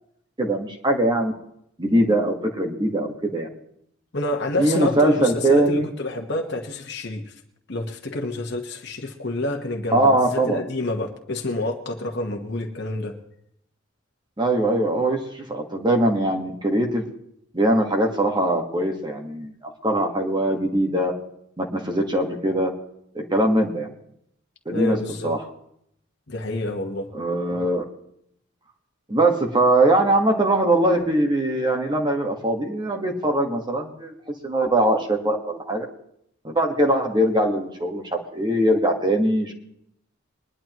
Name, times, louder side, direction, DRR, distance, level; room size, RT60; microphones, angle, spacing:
voice 1, 0.4-1.3 1.8-3.5 4.6-5.9 9.9-10.6 14.4-17.0 17.5-21.1 21.6-22.7 23.1-23.9 24.6-25.0 25.2-25.4 27.1-27.8 29.1-34.1 34.4-35.8 36.4-39.5, right 1 dB, 20° right, 2 dB, 1.5 m, -21 dB
voice 2, 4.1-7.3 7.7-13.1 24.7-25.3 26.3-27.1, left 2 dB, 55° left, 2 dB, 1.3 m, -28 dB
21.5 x 11.5 x 3.1 m, 0.73 s
head